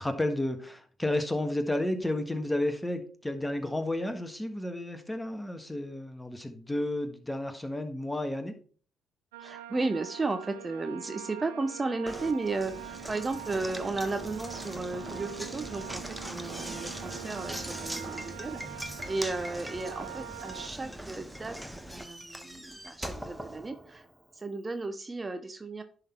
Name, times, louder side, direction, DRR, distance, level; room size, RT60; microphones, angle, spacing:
voice 1, 0.0-8.6, left 1 dB, 10° left, 7 dB, 1.5 m, -32 dB
sound 1, 9.3-20.7, right 12 dB, 90° right, 0.5 m, -44 dB
voice 2, 9.4-21.6 21.9-24.1 24.3-25.8, right 3 dB, 30° right, 8 dB, 0.8 m, -34 dB
Knock, 12.1-24.2, right 1 dB, 5° right, 1.2 m, -41 dB
10.5 x 3.9 x 4.4 m, 0.42 s
hypercardioid pair, 50°, 0 cm